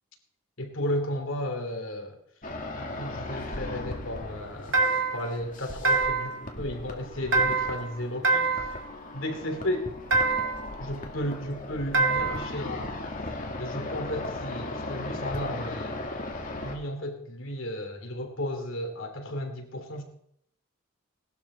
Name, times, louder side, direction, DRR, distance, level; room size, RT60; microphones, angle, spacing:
voice 1, 0.6-2.2 2.8-8.8 9.1-9.9 10.8-13.1 13.6-16.0 16.6-20.0, left 1 dB, 65° left, 4 dB, 3.1 m, -34 dB
sound 1, 2.4-16.8, left 2 dB, 40° left, 2.3 m, -37 dB
sound 2, 4.7-5.3 5.8-6.4 7.3-7.9 8.2-8.8 10.1-10.7 11.9-12.5, right 3 dB, 70° right, 2.5 m, -24 dB
19.5 x 12.5 x 4.4 m, 0.71 s
head